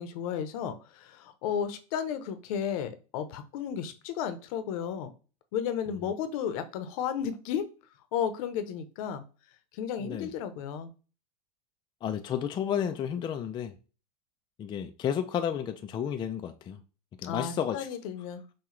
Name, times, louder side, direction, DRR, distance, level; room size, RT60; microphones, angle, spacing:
voice 1, 0.0-5.1 5.5-7.7 8.1-9.2 9.7-10.9 17.2-18.4, left 8 dB, 60° left, 0.8 m, -33 dB
voice 2, 10.0-10.3 12.0-13.7 14.6-16.8 17.2-17.9, left 9 dB, 25° left, 0.4 m, -32 dB
5.8 x 2.3 x 3.1 m
hypercardioid pair, 105°, 21 cm